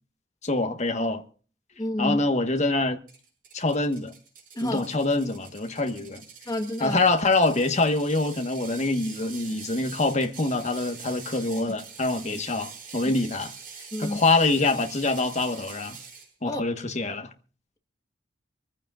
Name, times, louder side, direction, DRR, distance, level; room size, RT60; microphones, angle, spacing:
voice 1, 0.4-1.2 2.0-3.0 3.5-4.1 4.6-6.2 6.8-13.5 14.0-16.0 16.4-17.3, left 2 dB, 40° left, 1.4 m, -25 dB
voice 2, 1.8-2.2 4.5-4.9 6.5-7.0 11.7-11.8 13.9-14.2 16.4-16.6, left 1 dB, 20° left, 1.5 m, -29 dB
Ratchet pawl, 3.1-16.3, right 6 dB, 50° right, 6.4 m, -44 dB
25.5 x 15.0 x 2.5 m
head